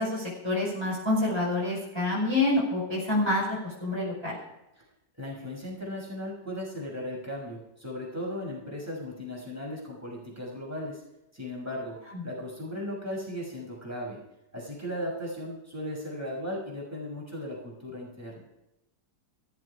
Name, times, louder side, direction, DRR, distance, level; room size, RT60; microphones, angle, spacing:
voice 1, 0.0-4.4 12.1-12.2, left 2 dB, 15° left, -4 dB, 5.3 m, -27 dB
voice 2, 5.2-11.0 11.3-12.0 12.2-14.2 14.5-18.4, left 1 dB, 10° right, -2 dB, 6.2 m, -36 dB
16.0 x 14.0 x 4.9 m, 0.89 s
omnidirectional pair, 1.8 m